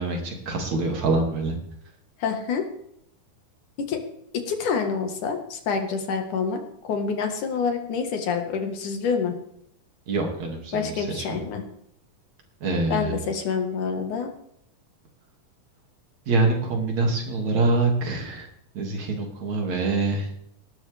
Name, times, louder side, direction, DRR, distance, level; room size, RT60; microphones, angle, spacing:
voice 1, 0.0-1.6 10.1-11.3 12.6-13.2 16.3-18.5 18.8-20.3, right 3 dB, 60° right, 1 dB, 3.7 m, -25 dB
voice 2, 2.2-2.7 3.9-4.0 4.3-9.3 10.7-11.6 12.9-14.3, left 5 dB, 70° left, 5 dB, 3.1 m, -27 dB
19.0 x 12.5 x 3.5 m, 0.73 s
omnidirectional pair, 3.7 m